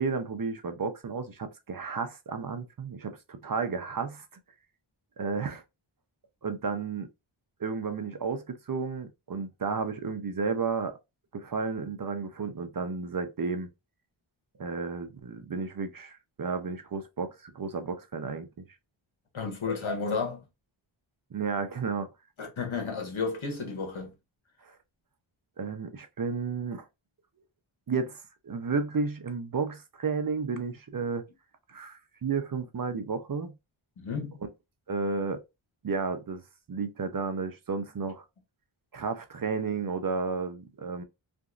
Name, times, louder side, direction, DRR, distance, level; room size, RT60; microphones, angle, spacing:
voice 1, 0.0-4.3 5.2-5.6 6.4-7.1 7.6-11.0 11.3-13.7 14.6-18.6 21.3-22.1 24.6-24.8 25.6-26.9 27.9-31.2 31.7-33.5 34.9-35.4 35.8-36.4 36.7-38.2 38.9-41.0, right 5 dB, 45° right, 0.5 m, -32 dB
voice 2, 19.3-20.4 22.4-24.1 34.0-34.4, left 4 dB, 70° left, 1.3 m, -32 dB
2.9 x 2.6 x 2.4 m
wide cardioid pair, 80°, 49 cm